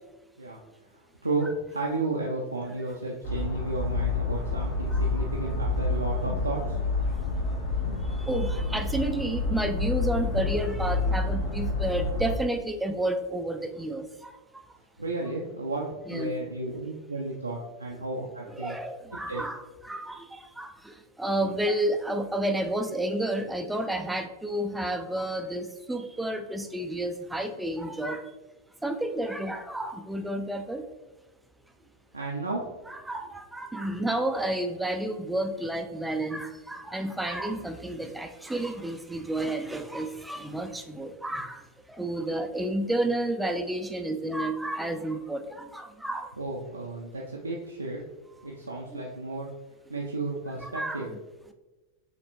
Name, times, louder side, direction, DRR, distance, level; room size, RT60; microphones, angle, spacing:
voice 1, 0.9-6.8 15.0-18.8 19.3-19.4 32.1-32.7 46.4-48.0 48.4-49.5 49.9-51.1, right 2 dB, 80° right, -2 dB, 0.5 m, -33 dB
sound 1, 3.2-12.3, left 3 dB, 55° left, 1.2 m, -28 dB
voice 2, 8.2-14.3 16.1-16.3 18.5-19.6 19.8-28.2 28.8-30.8 32.9-41.6 42.0-46.3 50.6-51.0, right 1 dB, 5° right, 6 dB, 0.4 m, -31 dB
5.0 x 3.3 x 3.0 m, 1.1 s
figure-of-eight pair, 90°, 0 cm